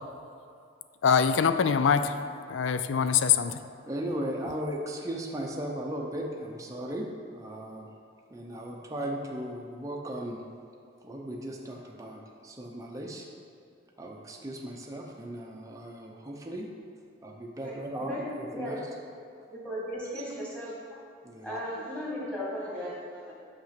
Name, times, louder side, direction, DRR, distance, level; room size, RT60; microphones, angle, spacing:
voice 1, 1.0-2.2 2.5-3.6, left 7 dB, 65° left, 11 dB, 0.4 m, -23 dB
voice 2, 3.8-7.9 8.3-10.4 11.0-13.2 14.0-16.7 17.2-18.8 21.2-21.5, right 1 dB, 15° right, -1 dB, 0.6 m, -37 dB
voice 3, 19.5-20.7 21.4-23.3, equal, 5° left, -7 dB, 2.0 m, -36 dB
6.1 x 5.9 x 5.8 m, 2.5 s
head